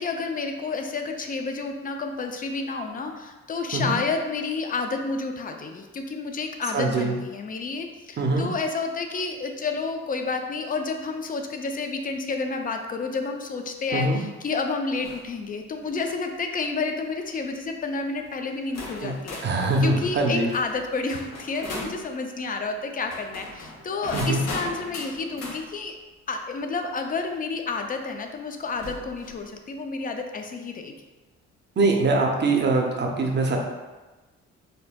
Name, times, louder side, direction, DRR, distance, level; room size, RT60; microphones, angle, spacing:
voice 1, 0.0-19.4 19.8-26.0 26.3-30.9, left 4 dB, 30° left, 4 dB, 0.4 m, -30 dB
voice 2, 6.7-7.1 8.2-8.5 13.9-14.2 19.0-19.1 19.4-20.5 24.1-24.4 31.8-33.6, right 2 dB, 35° right, 1 dB, 0.6 m, -23 dB
sound 1, 15.0-15.3 15.8-16.2 17.0-17.3 18.1-18.2 18.7-22.0 23.0-25.6 27.3-27.4 28.7-29.4, left 2 dB, 55° left, 0.8 m, -38 dB
4.3 x 2.6 x 2.2 m, 1.2 s
cardioid pair, 90°, 30 cm